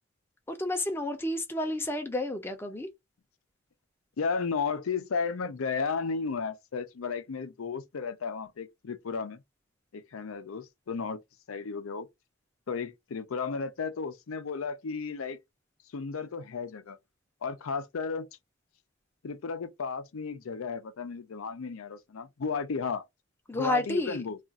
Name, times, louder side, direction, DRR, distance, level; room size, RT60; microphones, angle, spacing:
voice 1, 0.5-2.9 23.5-24.2, left 1 dB, 10° left, 0.5 m, -31 dB
voice 2, 4.2-9.4 9.9-11.2 11.5-12.1 12.7-15.4 15.9-17.0 17.4-18.3 19.2-23.0 23.5-24.4, left 5 dB, 85° left, 0.5 m, -34 dB
2.4 x 2.4 x 3.8 m
head